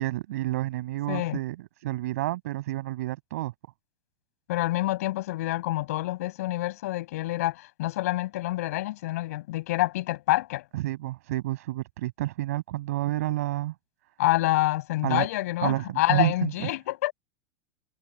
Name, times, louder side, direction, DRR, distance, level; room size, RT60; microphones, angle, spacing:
voice 1, 0.0-3.5 10.7-13.7 15.0-15.3 15.6-16.7, right 16 dB, 75° right, 7.4 m, -29 dB
voice 2, 1.1-1.4 4.5-10.6 14.2-17.1, left 17 dB, 70° left, 7.0 m, -27 dB
supercardioid pair, 130°, 8 cm